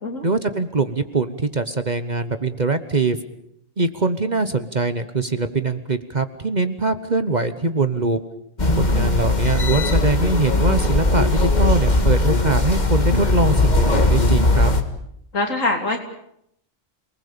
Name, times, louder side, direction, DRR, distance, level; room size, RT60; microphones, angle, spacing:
voice 1, 0.2-3.2 3.8-8.2 8.7-14.7, right 3 dB, 35° right, 10 dB, 1.2 m, -22 dB
sound 1, 8.6-14.8, left 2 dB, 35° left, 1.9 m, -18 dB
voice 2, 8.7-9.1 15.3-16.0, left 2 dB, 75° left, 3 dB, 3.7 m, -24 dB
28.0 x 19.5 x 7.0 m, 0.73 s
omnidirectional pair, 1.4 m